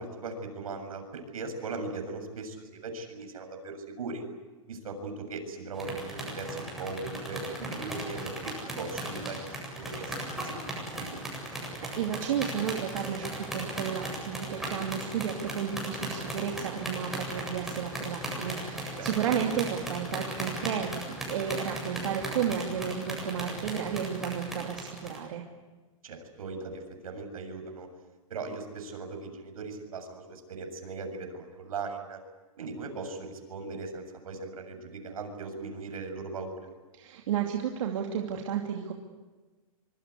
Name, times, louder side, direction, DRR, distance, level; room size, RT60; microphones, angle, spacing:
voice 1, 0.0-4.2 4.7-10.2 10.4-11.3 18.9-19.3 26.0-27.9 28.3-32.2 32.6-36.6, right 3 dB, 85° right, 6 dB, 7.2 m, -39 dB
sound 1, 5.8-25.2, right 1 dB, ahead, 7.9 m, -37 dB
voice 2, 11.6-25.4 36.9-38.9, right 8 dB, 65° right, 1 dB, 2.8 m, -32 dB
25.5 x 24.0 x 8.4 m, 1.3 s
hypercardioid pair, 150°, 18 cm